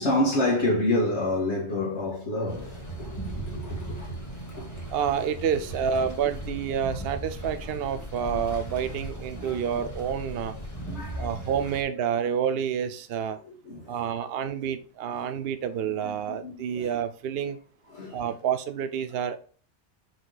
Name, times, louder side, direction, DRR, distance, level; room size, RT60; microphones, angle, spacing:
voice 1, 0.0-4.2 4.6-4.8 8.3-8.4 9.4-9.6 10.9-11.3 13.6-14.0 14.6-14.7 16.0-16.9 17.9-18.3, left 1 dB, 80° left, 2.2 m, -28 dB
sound 1, 2.5-11.8, right 1 dB, 15° left, 1.7 m, -38 dB
voice 2, 4.9-10.5 11.2-13.4 13.9-17.6 18.1-19.4, right 8 dB, 65° right, 0.8 m, -28 dB
6.0 x 5.2 x 4.0 m
omnidirectional pair, 1.2 m